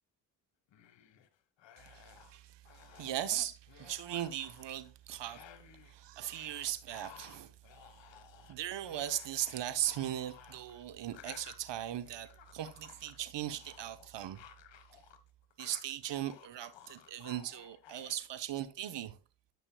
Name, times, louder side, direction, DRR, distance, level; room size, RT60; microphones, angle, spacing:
sound 1, 0.7-1.3 1.6-2.4 2.7-3.3 3.7-4.9 5.3-5.9 6.3-15.2 15.4-18.2, left 9 dB, 60° left, 1.3 m, -56 dB
voice 1, 1.8-2.6 2.9-5.4 5.9-7.5 8.5-14.4 15.6-19.2, right 12 dB, 55° right, 1.0 m, -38 dB
12.5 x 6.1 x 2.3 m
hypercardioid pair, 50°, 49 cm